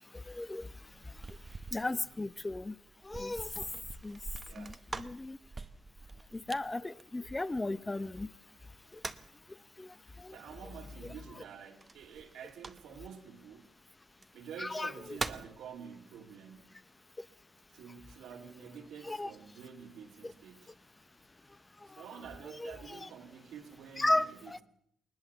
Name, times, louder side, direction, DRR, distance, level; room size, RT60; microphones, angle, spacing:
voice 1, 0.0-2.8 3.0-3.7 4.0-4.2 4.6-5.4 6.3-8.3 8.9-9.0 9.5-10.4 14.6-14.9 19.0-19.3 21.5-22.0 22.6-23.1 24.0-24.6, left 2 dB, 15° left, 0.8 m, -36 dB
sound 1, 0.6-8.0 8.6-9.4 11.8-13.1 14.1-14.2 14.8-15.6, right 3 dB, 25° right, 1.0 m, -44 dB
voice 2, 4.4-4.8 10.3-13.7 14.3-16.7 17.7-20.7 21.9-24.6, right 7 dB, 85° right, 2.8 m, -49 dB
21.0 x 20.0 x 7.0 m
cardioid pair, 110°, 0 cm